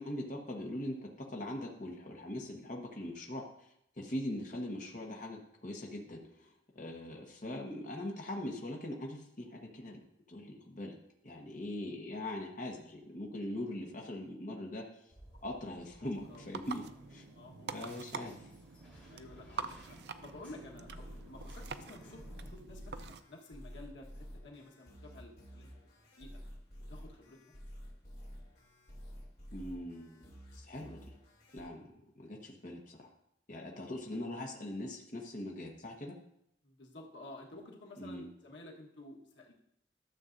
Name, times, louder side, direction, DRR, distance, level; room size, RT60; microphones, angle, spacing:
voice 1, 0.0-10.0 10.3-11.0 11.2-14.8 15.4-17.2 17.7-18.5 29.5-30.3 30.5-31.0 31.5-31.8 32.2-33.1 33.5-36.1 38.0-38.3, left 1 dB, 45° left, 0 dB, 1.1 m, -41 dB
sound 1, 15.1-22.5, equal, 5° left, 3.6 m, -60 dB
sound 2, 16.1-23.2, right 5 dB, 65° right, 0.5 m, -46 dB
voice 2, 17.3-18.1 19.1-20.0 20.2-25.8 26.2-26.3 26.9-27.4 33.7-34.0 36.6-39.5, left 2 dB, 85° left, 0 dB, 1.4 m, -52 dB
sound 3, 20.8-31.6, equal, 60° left, 2.8 m, -50 dB
12.5 x 7.0 x 2.6 m, 0.74 s
head